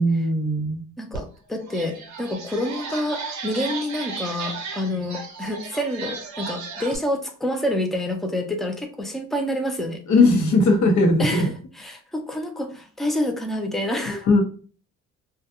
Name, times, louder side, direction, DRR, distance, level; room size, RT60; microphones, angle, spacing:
voice 1, 0.0-0.8 10.1-11.5 14.1-14.4, left 2 dB, 65° left, 3 dB, 0.8 m, -19 dB
voice 2, 1.0-10.0 11.2-11.5 11.7-14.3, left 1 dB, ahead, 4 dB, 0.4 m, -28 dB
sound 1, 1.1-1.2 1.6-7.0, right 4 dB, 65° right, 0.7 m, -35 dB
2.3 x 2.1 x 2.8 m, 0.40 s
cardioid pair, 90°, 30 cm